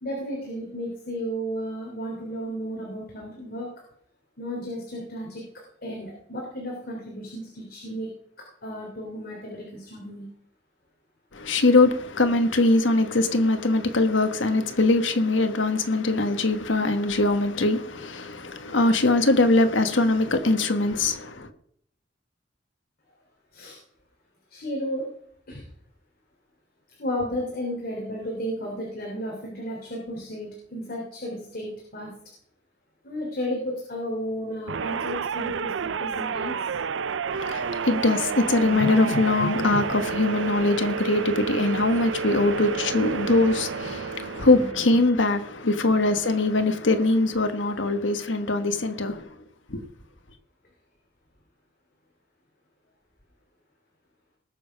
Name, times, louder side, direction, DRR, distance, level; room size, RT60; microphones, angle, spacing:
voice 1, 0.0-3.7 4.4-5.4 5.8-8.1 8.6-10.2 23.5-23.8 24.5-25.0 25.5-25.6 27.0-32.1 33.0-35.7 36.0-36.6 41.3-41.4 43.8-43.9 44.3-44.7 49.7-49.8, equal, 55° left, 3.4 m, -33 dB
voice 2, 11.3-21.5 37.3-49.3 49.7-49.9, left 2 dB, 85° left, 1.4 m, -22 dB
sound 1, 34.7-45.0, right 5 dB, 85° right, 0.5 m, -30 dB
19.5 x 7.1 x 5.2 m
head